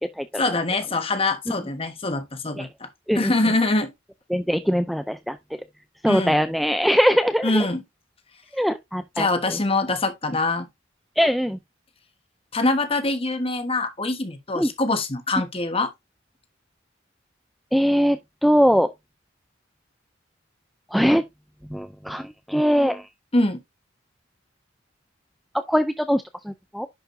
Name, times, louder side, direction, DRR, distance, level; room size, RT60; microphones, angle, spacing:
voice 1, 0.4-2.9 3.1-3.9 6.0-6.3 7.4-7.8 9.2-10.7 12.5-15.9 23.3-23.6, left 2 dB, 30° left, 1.2 m, -24 dB
voice 2, 4.3-5.4 6.0-7.7 8.6-9.6 11.2-11.6 14.6-14.7 17.7-18.2 18.4-18.9 20.9-21.2 21.7-23.0 25.7-26.9, equal, ahead, 0.4 m, -21 dB
10.5 x 4.9 x 2.6 m
head